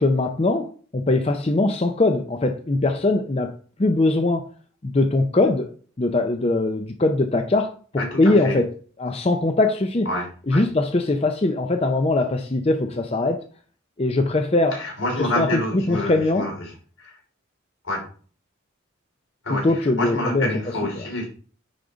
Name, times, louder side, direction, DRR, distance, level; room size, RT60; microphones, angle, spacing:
voice 1, 0.0-3.5 3.8-4.5 4.8-5.7 6.0-8.7 9.0-10.1 10.5-13.4 14.0-14.8 15.2-16.5 19.5-20.5 21.0-21.1, left 2 dB, 30° left, 0.5 m, -21 dB
voice 2, 8.0-8.5 10.1-10.6 14.7-16.5 17.0-17.2 17.8-18.0 19.4-21.3, left 1 dB, 75° left, 3.7 m, -27 dB
10.0 x 3.7 x 3.9 m
head